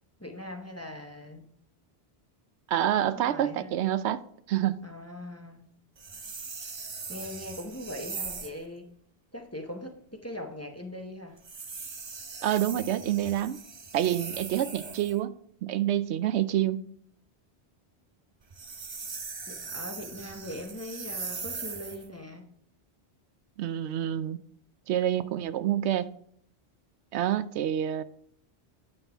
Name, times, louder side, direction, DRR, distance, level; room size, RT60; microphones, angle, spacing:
voice 1, 0.2-1.5 2.9-3.7 4.8-5.7 7.1-8.9 9.3-11.4 19.5-22.5, left 1 dB, 15° left, 0.7 m, -41 dB
voice 2, 2.7-4.2 4.5-4.8 12.4-13.6 13.9-16.8 23.6-24.4 24.9-26.1 27.1-28.0, right 11 dB, 90° right, 0.8 m, -27 dB
sound 1, 6.0-8.6 11.4-15.2 18.4-22.1, right 4 dB, 35° right, 0.5 m, -40 dB
9.3 x 5.6 x 3.4 m
omnidirectional pair, 1.1 m